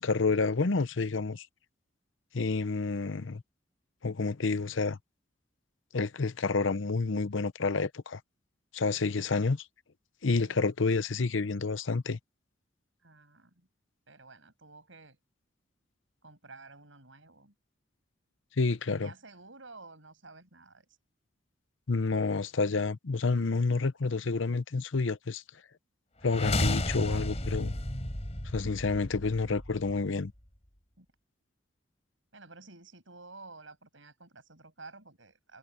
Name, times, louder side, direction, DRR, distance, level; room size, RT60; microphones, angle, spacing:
voice 1, 0.0-1.5 2.3-3.4 4.0-5.0 5.9-8.2 8.7-9.6 10.2-12.2 18.6-19.1 21.9-25.4 26.2-27.7 28.5-30.3, left 4 dB, 75° left, 0.8 m, -29 dB
voice 2, 10.3-10.6 13.0-13.7 14.1-15.2 16.2-17.5 18.9-20.9 31.0-31.1 32.3-35.6, right 3 dB, 75° right, 6.8 m, -52 dB
sound 1, 26.2-30.2, left 1 dB, 35° left, 3.9 m, -33 dB
head